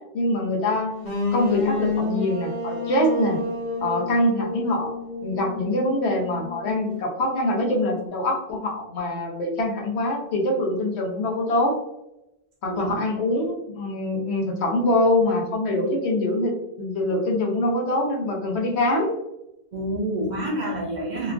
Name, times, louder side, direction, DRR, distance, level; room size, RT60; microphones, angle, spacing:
voice 1, 0.1-0.9 1.3-3.4 3.8-4.9 5.2-11.7 12.6-16.5 16.8-19.1, left 1 dB, 90° left, 0 dB, 1.0 m, -24 dB
sound 1, 1.0-6.9, left 3 dB, 65° left, 1.1 m, -29 dB
voice 2, 12.7-13.0 19.7-21.3, right 1 dB, 55° right, -1 dB, 0.6 m, -28 dB
2.9 x 2.3 x 2.4 m, 0.88 s
omnidirectional pair, 1.1 m